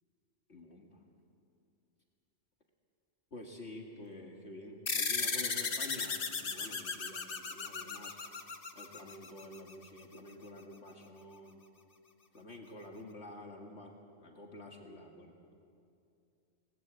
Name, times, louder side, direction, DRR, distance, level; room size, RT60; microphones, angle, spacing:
voice 1, 0.5-1.0 3.3-8.2 8.7-11.6 12.3-15.5, left 1 dB, 65° left, 1 dB, 2.3 m, -49 dB
sound 1, 4.9-9.7, left 5 dB, 50° left, 1.4 m, -36 dB
28.5 x 19.5 x 8.1 m, 2.5 s
omnidirectional pair, 1.2 m